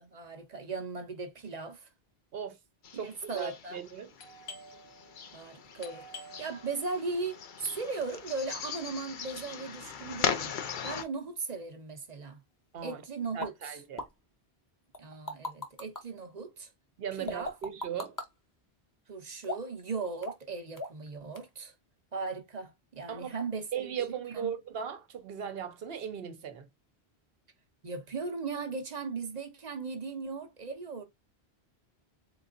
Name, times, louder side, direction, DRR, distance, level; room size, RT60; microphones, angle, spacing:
voice 1, 0.0-1.9 3.0-3.8 5.3-6.0 6.4-10.5 10.8-12.4 12.8-13.8 15.0-16.7 17.2-17.5 19.1-21.7 22.1-24.5 27.8-31.0, right 4 dB, 45° right, 0.8 m, -38 dB
sound 1, 2.8-11.0, left 7 dB, 55° left, 0.7 m, -39 dB
voice 2, 2.9-4.1 12.7-13.0 13.3-14.0 17.0-18.2 23.1-23.3 23.7-26.7, right 8 dB, 70° right, 1.0 m, -38 dB
Doorbell, 4.2-9.6, left 1 dB, 80° left, 1.1 m, -52 dB
sound 2, 13.4-13.5 14.0-14.1 14.9-16.0 17.3-18.3 19.4-19.8 20.2-20.5 20.8-21.1 21.4-21.5, left 1 dB, 20° left, 0.8 m, -37 dB
3.9 x 3.8 x 2.5 m
omnidirectional pair, 1.1 m